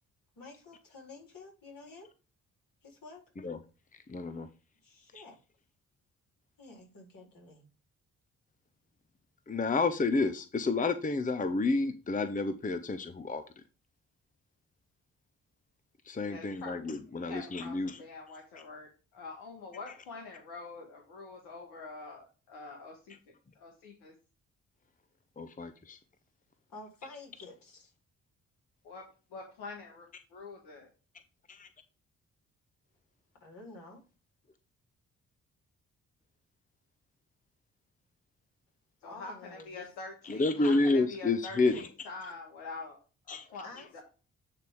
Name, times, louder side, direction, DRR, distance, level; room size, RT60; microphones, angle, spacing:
voice 1, 0.4-2.1 2.8-3.2 4.8-5.4 6.6-7.7 26.7-27.9 33.4-34.0 39.0-39.9 43.6-43.9, left 3 dB, 55° left, 0 dB, 3.9 m, -50 dB
voice 2, 4.1-4.5 5.1-5.2 9.5-13.4 16.1-18.0 25.4-26.0 31.5-31.7 40.2-41.8 43.3-43.4, left 3 dB, 20° left, 11 dB, 0.8 m, -30 dB
voice 3, 16.3-17.0 17.2-23.1 23.5-24.1 28.8-29.0 29.3-30.9 39.0-43.0 43.3-44.0, left 3 dB, 80° left, 1 dB, 1.5 m, -45 dB
9.3 x 3.4 x 4.5 m, 0.33 s
hypercardioid pair, 40°, 39 cm